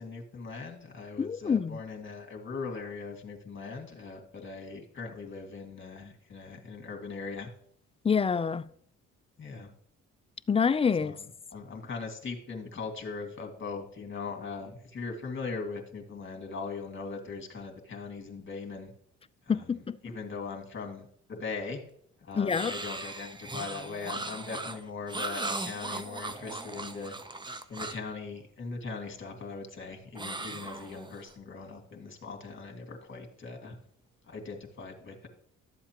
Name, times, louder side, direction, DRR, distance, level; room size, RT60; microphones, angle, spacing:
voice 1, 0.0-7.5 9.4-9.7 11.0-11.2 11.5-18.9 19.5-21.8 22.2-27.2 27.7-33.8 34.3-35.3, left 4 dB, 40° left, 2.2 m, -40 dB
voice 2, 1.2-1.8 8.0-8.7 10.5-11.1 19.5-20.0 22.3-22.7, left 6 dB, 20° left, 0.4 m, -26 dB
sound 1, 22.5-28.1 30.2-31.3, right 2 dB, 15° right, 0.7 m, -38 dB
12.0 x 7.6 x 3.0 m
cardioid pair, 90°, 30 cm